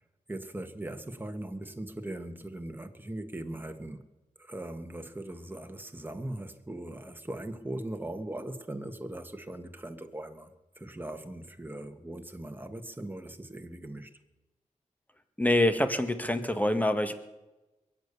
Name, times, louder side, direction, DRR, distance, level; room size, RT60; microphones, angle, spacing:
voice 1, 0.3-4.0 4.4-14.2, right 1 dB, 15° right, 1.6 m, -40 dB
voice 2, 15.4-17.1, left 1 dB, 10° left, 1.8 m, -25 dB
22.0 x 8.8 x 7.0 m
cardioid pair, 55°, 13 cm